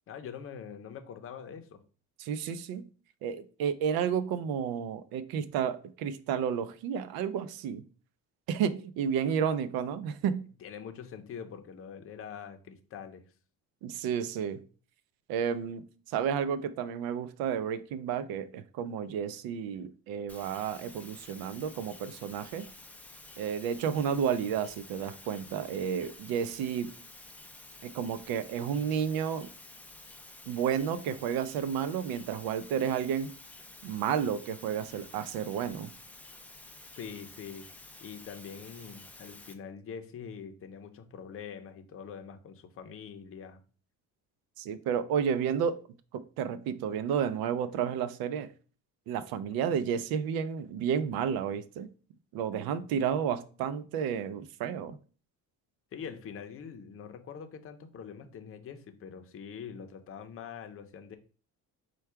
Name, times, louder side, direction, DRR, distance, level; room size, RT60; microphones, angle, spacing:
voice 1, 0.1-1.8 10.6-13.2 36.9-37.7 38.0-43.6 55.9-61.2, left 7 dB, 40° left, 0.6 m, -44 dB
voice 2, 2.2-2.9 3.2-7.8 8.5-10.5 13.8-14.6 15.3-22.7 23.4-26.9 27.8-29.5 30.5-33.3 33.8-35.9 44.6-45.8 46.1-48.5 49.1-51.9 52.3-55.0, right 8 dB, 80° right, 0.5 m, -31 dB
sound 1, 20.3-39.5, left 2 dB, 5° left, 0.3 m, -51 dB
4.6 x 2.3 x 4.4 m
cardioid pair, 115°, 36 cm